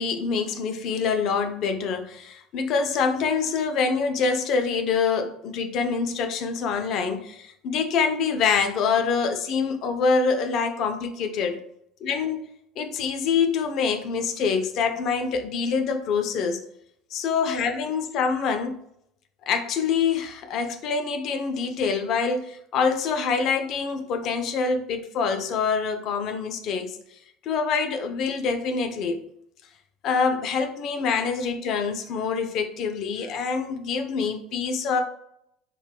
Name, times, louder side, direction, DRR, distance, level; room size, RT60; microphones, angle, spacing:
voice 1, 0.0-11.6 12.0-12.4 12.8-16.6 17.1-18.8 19.5-29.2 30.0-35.0, left 5 dB, 55° left, 7 dB, 0.3 m, -25 dB
2.1 x 2.1 x 3.2 m, 0.73 s
hypercardioid pair, 75°, 0 cm